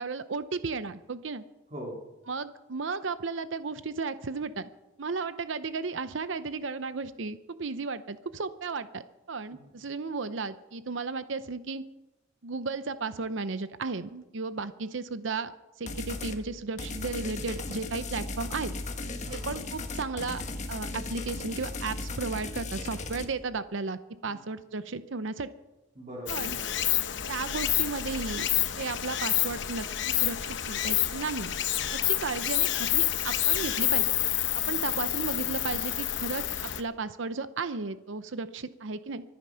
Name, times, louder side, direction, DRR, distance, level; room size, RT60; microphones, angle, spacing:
voice 1, 0.0-1.4 2.3-4.7 5.0-11.8 12.4-15.5 15.8-18.7 19.3-20.4 20.7-25.5 26.3-26.6 27.3-28.5 28.8-31.5 31.9-34.1 34.5-39.2, right 4 dB, 70° right, 13 dB, 0.7 m, -34 dB
voice 2, 1.7-2.1 9.5-9.7 19.2-19.5 24.2-24.4 25.9-26.9, equal, 35° right, -1 dB, 2.5 m, -42 dB
sound 1, 15.9-16.4 16.8-23.3, left 2 dB, 35° left, 1.4 m, -36 dB
Stream, 26.3-36.8, left 12 dB, 65° left, 0.9 m, -28 dB
24.5 x 9.6 x 5.7 m, 1.0 s
head